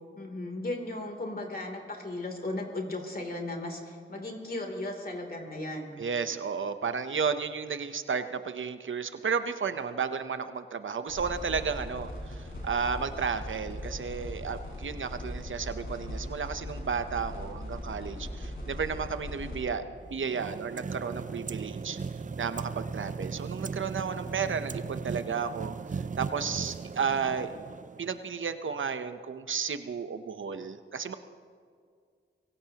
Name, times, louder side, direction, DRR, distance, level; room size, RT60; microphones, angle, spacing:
voice 1, 0.2-6.0, left 2 dB, 45° left, 2 dB, 3.1 m, -36 dB
voice 2, 6.0-22.0 22.4-27.5 28.0-31.1, right 6 dB, 75° right, 10 dB, 0.8 m, -33 dB
sound 1, 11.1-19.6, left 1 dB, 90° left, 5.3 m, -39 dB
sound 2, 20.0-28.3, right 5 dB, 40° right, 0.5 m, -38 dB
23.5 x 16.5 x 2.9 m, 2.1 s
cardioid pair, 55°, 20 cm